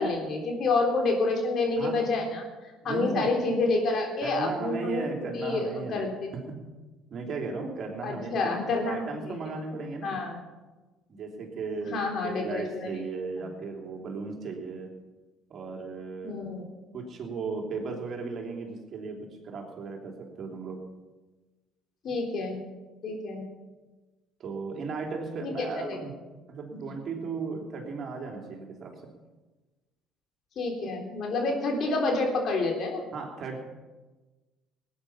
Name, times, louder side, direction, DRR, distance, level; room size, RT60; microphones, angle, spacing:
voice 1, 0.0-5.1 5.3-6.3 8.0-9.4 10.0-10.4 11.9-12.9 13.4-13.5 16.2-16.6 22.0-22.6 23.0-23.4 25.4-26.0 30.6-33.1, left 3 dB, 55° left, 1 dB, 3.6 m, -28 dB
voice 2, 2.8-3.3 4.2-6.1 6.3-6.6 7.1-10.2 11.1-14.9 15.5-16.4 16.9-20.8 24.4-26.1 26.5-29.0 33.1-33.6, right 4 dB, 50° right, 1 dB, 3.2 m, -36 dB
19.0 x 9.6 x 5.8 m, 1.2 s
hypercardioid pair, 60°, 0 cm